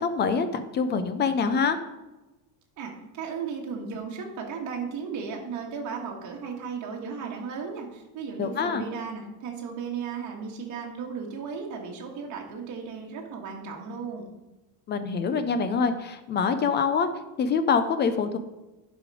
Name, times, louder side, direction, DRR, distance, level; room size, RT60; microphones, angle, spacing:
voice 1, 0.0-1.8 8.4-8.9 14.9-17.1 17.4-18.4, left 5 dB, 25° left, 10 dB, 0.4 m, -25 dB
voice 2, 2.8-14.3, right 5 dB, 40° right, 0 dB, 1.8 m, -35 dB
11.0 x 5.1 x 4.8 m, 1.0 s
cardioid pair, 165°, 45 cm